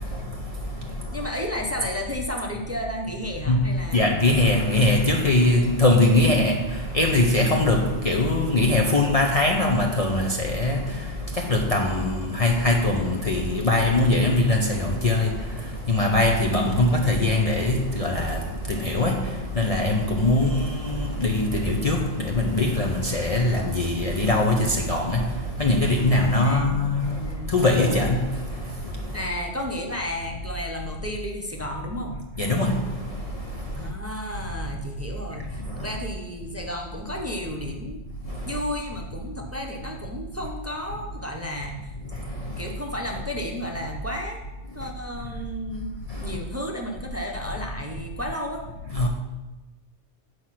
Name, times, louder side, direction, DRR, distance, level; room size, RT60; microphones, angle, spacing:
voice 1, 0.0-1.3 3.5-29.2 32.4-33.9 35.3-35.9 38.3-38.6 42.0-42.7 44.8-44.9 46.1-46.4 48.9-49.1, left 2 dB, 40° left, 0.7 m, -22 dB
voice 2, 1.1-4.2 26.4-27.5 29.1-32.1 33.7-38.0 38.4-41.7 42.6-44.4 44.7-45.9 46.2-48.6, left 1 dB, 15° right, 0.8 m, -33 dB
8.1 x 4.6 x 5.8 m
omnidirectional pair, 1.2 m